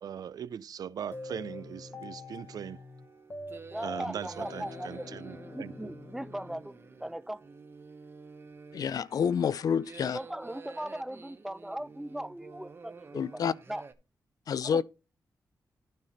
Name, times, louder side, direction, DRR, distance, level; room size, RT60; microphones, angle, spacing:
voice 1, 0.0-2.8 3.8-5.9, right 8 dB, 75° right, 0.3 m, -40 dB
sound 1, 1.0-13.9, right 4 dB, 35° right, 0.7 m, -51 dB
sound 2, 1.1-7.3, left 2 dB, 35° left, 0.9 m, -44 dB
voice 2, 3.7-5.2 5.5-7.4 10.1-13.4 13.7-13.8 14.6-14.8, right 1 dB, 5° right, 0.4 m, -39 dB
voice 3, 8.7-10.2 13.1-13.5 14.5-14.8, left 7 dB, 70° left, 0.4 m, -28 dB
12.0 x 4.1 x 4.1 m
wide cardioid pair, 105°, 7 cm